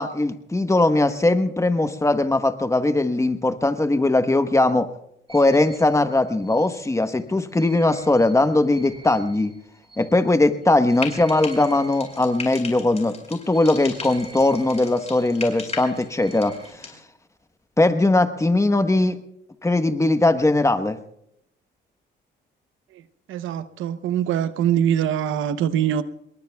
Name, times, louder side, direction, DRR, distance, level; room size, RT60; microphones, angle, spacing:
voice 1, 0.0-4.9 5.3-9.5 10.0-16.6 17.8-19.2 19.6-21.0, left 2 dB, 15° left, 1.2 m, -20 dB
sound 1, 5.3-12.8 13.4-16.7, right 2 dB, 25° right, 7.9 m, -48 dB
Frying (food), 10.9-17.0, left 4 dB, 35° left, 5.5 m, -37 dB
voice 2, 23.3-26.0, right 9 dB, 80° right, 0.8 m, -23 dB
27.0 x 22.0 x 2.3 m
cardioid pair, 90°, 20 cm